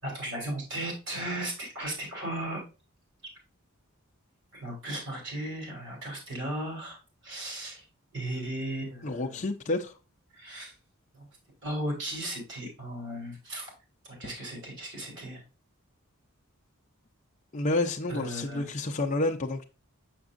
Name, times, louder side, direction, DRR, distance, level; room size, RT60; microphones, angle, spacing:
voice 1, 0.0-2.6 4.5-7.0 7.2-7.8 8.1-9.4 10.3-10.7 11.1-11.3 11.6-13.7 14.0-15.4 18.1-18.7, right 1 dB, 55° right, 3.5 m, -36 dB
voice 2, 9.0-9.9 17.5-19.6, left 2 dB, 35° left, 0.5 m, -29 dB
6.5 x 6.0 x 2.5 m
head